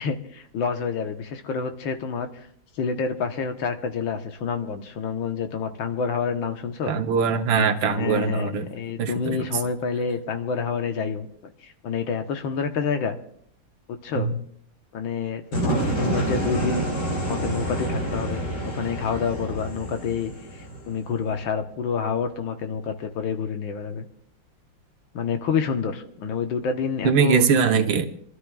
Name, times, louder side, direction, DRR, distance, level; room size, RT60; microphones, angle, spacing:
voice 1, 0.0-2.5 2.8-7.0 7.9-11.3 11.6-13.2 13.9-14.3 14.9-16.9 17.3-24.1 25.1-27.5, left 6 dB, 85° left, 6 dB, 1.9 m, -28 dB
voice 2, 6.9-8.7 9.0-9.4 14.2-14.3 15.7-15.9 27.0-28.1, right 6 dB, 75° right, 7 dB, 1.7 m, -22 dB
sound 1, 15.5-21.4, right 1 dB, 60° left, 3.0 m, -28 dB
26.5 x 13.0 x 2.4 m, 0.65 s
omnidirectional pair, 2.1 m